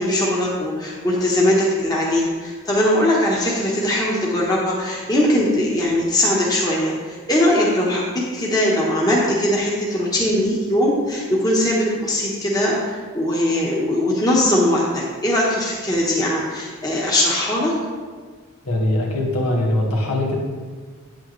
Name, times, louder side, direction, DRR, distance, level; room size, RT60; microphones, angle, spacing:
voice 1, 0.0-17.7, left 1 dB, 15° left, -4 dB, 1.1 m, -20 dB
voice 2, 18.6-20.4, left 1 dB, 90° left, -2 dB, 1.8 m, -21 dB
8.7 x 8.5 x 3.2 m, 1.5 s
head